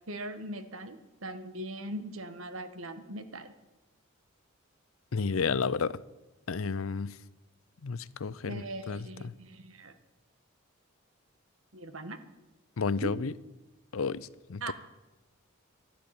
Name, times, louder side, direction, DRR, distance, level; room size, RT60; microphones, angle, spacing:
voice 1, 0.1-3.5 8.4-9.9 11.7-12.2 13.0-13.1 14.6-14.7, right 1 dB, 85° right, 1.5 m, -40 dB
voice 2, 5.1-6.0 6.5-7.1 7.8-9.3 12.8-13.3 13.9-14.7, left 5 dB, 85° left, 0.6 m, -32 dB
12.5 x 12.0 x 8.7 m
head